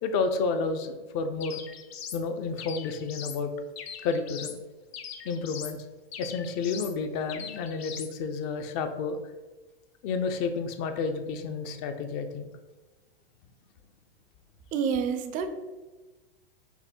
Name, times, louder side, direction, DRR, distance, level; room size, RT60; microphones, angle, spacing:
voice 1, 0.0-1.6 2.1-3.5 4.0-4.6 5.2-5.8 6.2-9.2 10.0-12.5, left 4 dB, 40° left, 7 dB, 0.5 m, -30 dB
sound 1, 1.4-2.2 2.6-3.4 3.8-4.6 4.9-5.8 6.1-7.0 7.3-8.1, left 8 dB, 85° left, 0.6 m, -41 dB
voice 2, 14.7-15.5, right 6 dB, 25° right, 8 dB, 0.4 m, -28 dB
5.6 x 2.1 x 4.3 m, 1.2 s
hypercardioid pair, 125°, 30 cm